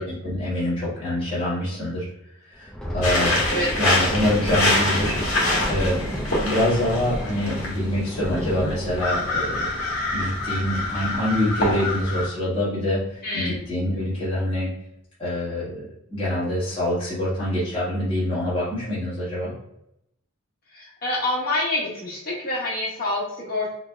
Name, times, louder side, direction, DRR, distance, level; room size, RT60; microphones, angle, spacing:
voice 1, 0.0-2.1 2.5-3.4 3.8-5.1 5.7-6.1 6.4-9.8 10.1-13.0 13.3-14.7 15.2-15.8 16.1-19.5, left 1 dB, 25° left, -8 dB, 1.2 m, -25 dB
Thunder, 2.5-11.6 11.9-12.2 12.5-12.8 13.4-13.9, equal, ahead, 0.6 m, -32 dB
sound 1, 3.0-12.3, left 2 dB, 80° left, 1.3 m, -26 dB
voice 2, 13.2-13.5 20.7-23.7, left 1 dB, 45° left, -7 dB, 1.3 m, -27 dB
3.7 x 3.3 x 2.2 m, 0.78 s
head